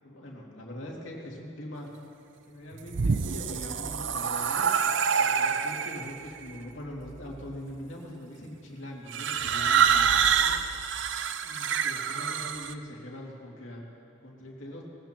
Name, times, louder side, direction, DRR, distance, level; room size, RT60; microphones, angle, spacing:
voice 1, 0.0-1.9 2.5-4.7 5.2-10.5 11.4-13.8 14.2-14.8, left 1 dB, 80° left, -2 dB, 2.4 m, -42 dB
sound 1, 2.7-6.2 7.1-7.5 9.1-12.7, right 7 dB, 65° right, 0.5 m, -26 dB
20.0 x 15.0 x 3.0 m, 2.9 s
head